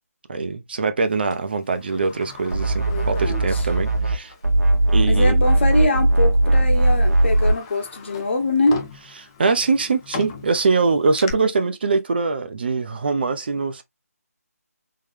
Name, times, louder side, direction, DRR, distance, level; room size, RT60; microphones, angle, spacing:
voice 1, 0.3-4.3 4.9-5.4 9.4-13.8, right 4 dB, 40° right, 0.6 m, -22 dB
Sliding door, 1.3-4.5 4.9-5.0 5.9-6.1 6.6-11.3, left 6 dB, 15° left, 0.5 m, -39 dB
sound 1, 2.5-4.2 4.4-7.6, right 1 dB, 80° right, 1.4 m, -18 dB
voice 2, 2.9-3.4 5.0-8.8, left 2 dB, 45° left, 1.2 m, -23 dB
3.7 x 3.2 x 3.2 m
figure-of-eight pair, 155°, 9 cm